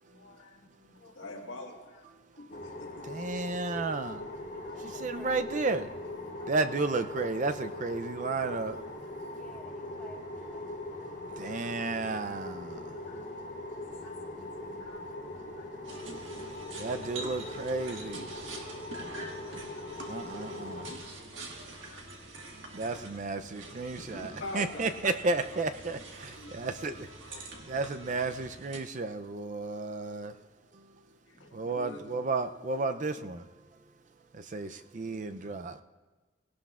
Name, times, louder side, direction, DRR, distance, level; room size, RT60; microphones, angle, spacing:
voice 1, 0.0-2.1 2.3-3.1 4.5-5.0 6.2-6.3 11.4-11.7 13.1-16.2 16.5-17.1 19.2-20.0 21.3-22.1 24.1-25.1 25.5-25.6 26.4-26.8 27.3-27.8 31.3-32.0 32.9-33.0 34.4-34.7, left 2 dB, 75° left, 0 dB, 1.7 m, -48 dB
sound 1, 2.5-21.0, left 1 dB, 40° left, 4.1 m, -41 dB
voice 2, 3.0-4.2 4.8-5.9 6.5-8.8 11.4-13.0 16.8-18.3 20.1-20.9 22.7-24.3 24.5-27.1 27.7-30.3 31.5-33.4 34.3-35.8, right 3 dB, 40° right, 9 dB, 0.4 m, -33 dB
voice 3, 4.7-5.8 6.4-6.5 7.0-7.2 9.3-11.0, left 1 dB, 5° left, -6 dB, 1.9 m, -55 dB
sound 2, 15.8-28.8, right 2 dB, 70° right, 1.6 m, -46 dB
19.0 x 17.0 x 2.4 m, 1.3 s
head